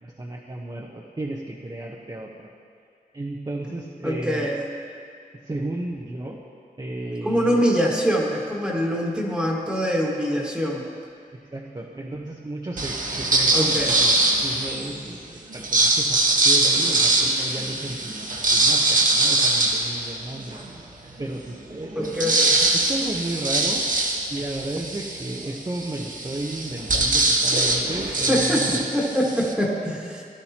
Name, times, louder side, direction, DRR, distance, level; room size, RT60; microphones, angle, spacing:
voice 1, 0.0-2.3 3.1-4.5 5.5-6.4 6.8-7.6 11.5-14.1 14.4-15.2 15.5-20.6 21.2-22.3 22.7-23.8 24.3-28.8, right 2 dB, 25° right, -2 dB, 1.0 m, -33 dB
voice 2, 4.0-4.6 7.2-10.8 13.5-14.0 21.9-22.6 28.0-30.2, equal, 5° right, -4 dB, 1.7 m, -24 dB
sound 1, 12.8-14.9 15.5-20.7 21.2-21.3 21.5-29.5, right 2 dB, 60° right, 1.3 m, -22 dB
18.0 x 12.0 x 2.9 m, 2.3 s
wide cardioid pair, 85°, 16 cm